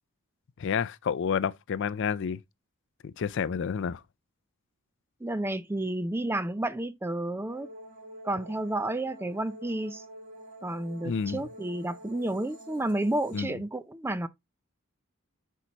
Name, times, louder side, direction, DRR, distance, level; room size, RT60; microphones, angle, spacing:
voice 1, 0.6-2.4 3.0-4.0 11.0-11.4 13.3-13.5, left 6 dB, 55° left, 0.4 m, -29 dB
voice 2, 5.2-7.7 8.2-10.0 10.6-14.3, right 1 dB, 10° right, 0.4 m, -31 dB
sound 1, 7.5-13.4, right 1 dB, 40° right, 2.6 m, -48 dB
8.3 x 4.6 x 2.8 m
head